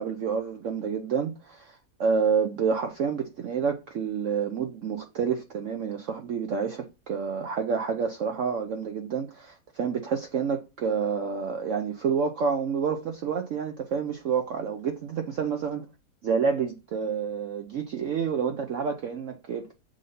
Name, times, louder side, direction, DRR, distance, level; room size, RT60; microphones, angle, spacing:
voice 1, 0.0-15.9 16.2-19.7, right 6 dB, 60° right, 0.9 m, -28 dB
6.5 x 2.6 x 5.5 m
omnidirectional pair, 1.8 m